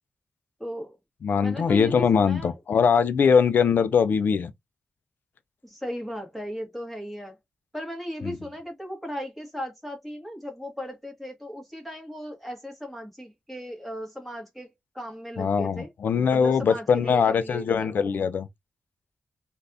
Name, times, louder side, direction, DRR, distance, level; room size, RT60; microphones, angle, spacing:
voice 1, 0.6-1.0 1.4-2.5 5.6-7.4 7.7-15.9 16.3-18.2, equal, ahead, 1.4 m, -36 dB
voice 2, 1.2-4.5 8.2-8.4 15.4-18.5, left 6 dB, 75° left, 0.4 m, -22 dB
3.3 x 2.5 x 2.6 m
wide cardioid pair, 95°, 3 cm